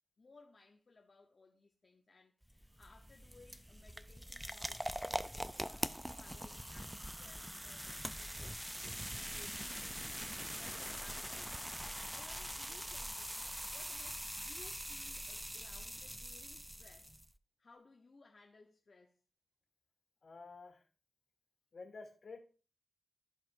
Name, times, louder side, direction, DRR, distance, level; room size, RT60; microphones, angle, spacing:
voice 1, 0.2-10.0 10.5-11.6 11.9-17.2 17.6-19.2, left 3 dB, 50° left, 0.9 m, -62 dB
sound 1, 2.4-17.3, equal, 5° right, 0.4 m, -43 dB
sound 2, 11.1-16.1, right 2 dB, 70° right, 1.7 m, -72 dB
voice 2, 20.2-20.9 21.7-22.4, left 4 dB, 70° left, 2.8 m, -51 dB
14.5 x 5.0 x 2.6 m
wide cardioid pair, 100°, 0 cm